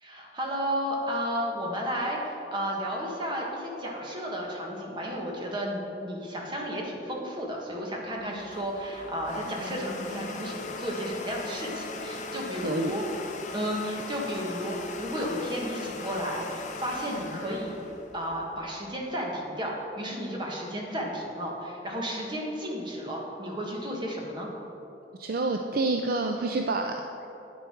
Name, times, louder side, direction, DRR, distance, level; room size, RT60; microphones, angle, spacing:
voice 1, 0.0-13.0 13.5-17.8 18.1-24.5, equal, 25° right, -2 dB, 1.6 m, -33 dB
Domestic sounds home sounds, 8.1-18.8, left 3 dB, 40° left, 0.7 m, -39 dB
voice 2, 25.2-27.3, right 3 dB, 55° right, 4 dB, 0.4 m, -28 dB
9.6 x 9.2 x 4.5 m, 3.0 s
head